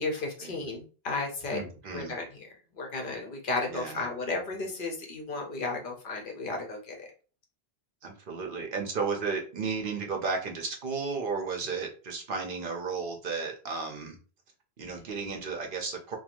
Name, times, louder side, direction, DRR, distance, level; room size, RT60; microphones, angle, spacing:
voice 1, 0.0-1.7 1.9-7.1, left 3 dB, 60° left, 1 dB, 0.8 m, -34 dB
voice 2, 1.5-2.1 3.7-4.0 8.0-14.2 14.8-16.2, right 4 dB, 60° right, 3 dB, 0.7 m, -33 dB
3.0 x 2.2 x 2.5 m, 0.36 s
omnidirectional pair, 1.1 m